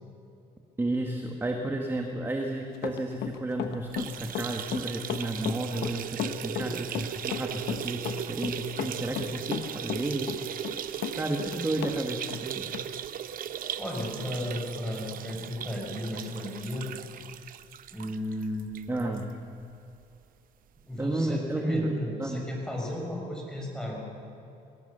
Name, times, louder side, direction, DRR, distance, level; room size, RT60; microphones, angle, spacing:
voice 1, 0.8-10.9 11.1-12.8 18.9-19.4 21.0-22.5, right 2 dB, 15° right, 3 dB, 1.6 m, -32 dB
Run, 2.7-12.0 12.3-12.4 12.7-12.8, left 10 dB, 75° left, 1.2 m, -34 dB
sound 1, 3.8-19.2 19.6-19.7 20.0-20.1 21.1-21.2, right 10 dB, 55° right, 0.8 m, -38 dB
voice 2, 13.8-16.8 17.9-18.7 20.9-24.0, left 1 dB, 5° left, -2 dB, 6.6 m, -34 dB
22.5 x 17.0 x 6.8 m, 2.8 s
cardioid pair, 110°, 17 cm